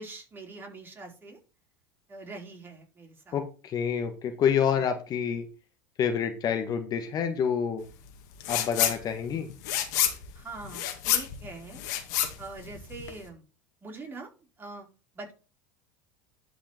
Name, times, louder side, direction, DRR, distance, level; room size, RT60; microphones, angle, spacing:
voice 1, 0.0-1.4 2.1-3.4 4.7-4.8 9.3-9.6 10.3-11.8 12.4-13.4 13.8-14.3 14.6-14.9 15.1-15.3, right 3 dB, 20° right, 1 dB, 4.5 m, -43 dB
voice 2, 3.3-5.5 6.0-7.9 8.5-9.5, left 7 dB, 40° left, 7 dB, 1.5 m, -28 dB
sound 1, 8.4-9.0 9.3-13.2, left 11 dB, 70° left, 2.0 m, -28 dB
11.5 x 5.0 x 4.4 m, 0.33 s
hypercardioid pair, 85°, 10 cm